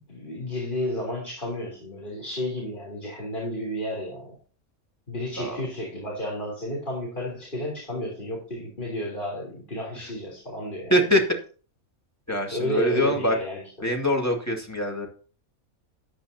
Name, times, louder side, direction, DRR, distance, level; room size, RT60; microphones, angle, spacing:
voice 1, 0.1-4.4 5.1-11.1 12.5-13.9, left 1 dB, 35° left, -2 dB, 3.6 m, -32 dB
voice 2, 10.9-11.2 12.3-13.4 13.8-15.1, equal, 10° left, 1 dB, 2.1 m, -23 dB
13.5 x 10.5 x 2.8 m, 0.39 s
omnidirectional pair, 1.5 m